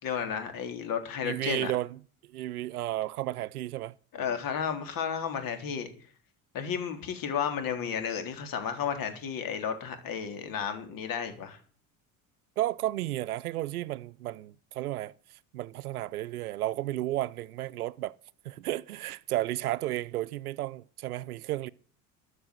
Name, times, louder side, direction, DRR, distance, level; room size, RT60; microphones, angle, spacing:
voice 1, 0.0-1.7 4.2-5.9 6.5-11.6, left 7 dB, 50° left, 3.4 m, -33 dB
voice 2, 1.2-2.0 2.3-3.9 12.6-15.1 15.5-18.1 18.4-21.7, right 15 dB, 90° right, 0.6 m, -33 dB
13.5 x 6.8 x 9.4 m
hypercardioid pair, 80°, 43 cm